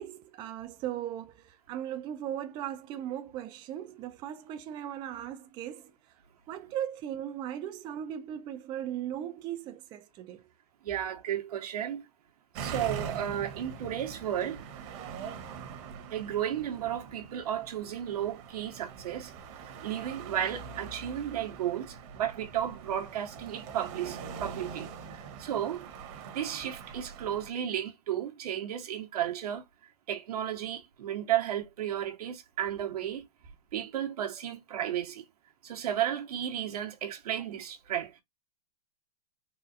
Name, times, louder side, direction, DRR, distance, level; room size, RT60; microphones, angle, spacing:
voice 1, 0.0-5.9 6.5-10.4, right 11 dB, 25° right, 0.4 m, -38 dB
voice 2, 10.8-12.1 12.5-14.6 16.1-19.3 19.8-25.9 26.2-29.6 30.1-33.2 33.7-35.2 35.6-38.2, right 10 dB, 80° right, 1.2 m, -33 dB
sound 1, 12.5-27.5, right 6 dB, 50° right, 1.1 m, -43 dB
4.1 x 2.3 x 2.6 m
hypercardioid pair, 140°, 20 cm